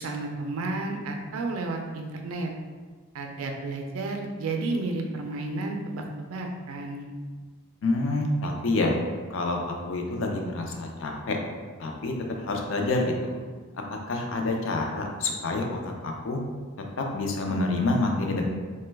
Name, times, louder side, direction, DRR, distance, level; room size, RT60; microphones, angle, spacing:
voice 1, 0.0-2.5 3.1-7.1, right 2 dB, 75° right, 2 dB, 0.4 m, -32 dB
voice 2, 7.8-9.0 9.3-11.4 11.8-12.1 12.4-13.3 13.9-16.4 17.0-18.5, left 2 dB, 65° left, 1 dB, 0.4 m, -27 dB
3.0 x 2.1 x 3.3 m, 1.5 s
head